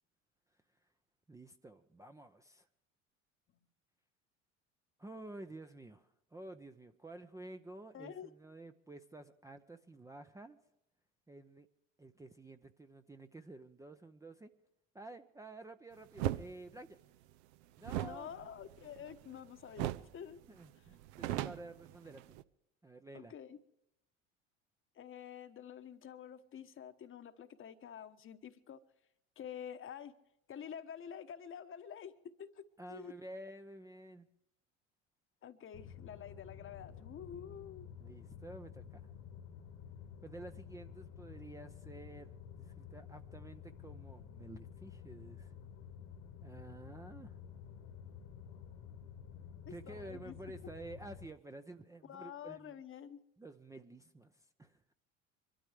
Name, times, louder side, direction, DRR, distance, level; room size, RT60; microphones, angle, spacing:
voice 1, 1.3-2.7 5.0-10.6 11.3-11.7 12.0-14.5 14.9-17.0 17.8-18.3 20.5-22.4 22.8-23.3 32.8-34.3 38.0-39.1 40.2-45.5 46.4-47.4 49.7-52.8 53.4-54.8, right 2 dB, 10° right, 6 dB, 0.6 m, -51 dB
voice 2, 7.9-8.3 18.0-20.4 23.1-23.6 24.9-28.8 29.4-30.1 30.5-32.1 32.4-33.1 35.4-37.9 49.7-50.4 52.0-53.2, left 8 dB, 30° left, 11 dB, 1.1 m, -48 dB
sound 1, 16.2-16.5 17.8-19.4 19.8-20.1 20.4-20.5 20.9-22.4, right 14 dB, 60° right, 0.7 m, -38 dB
sound 2, 35.7-51.3, left 8 dB, 55° left, 1.6 m, -51 dB
25.0 x 12.5 x 3.3 m, 0.79 s
figure-of-eight pair, 65°, 38 cm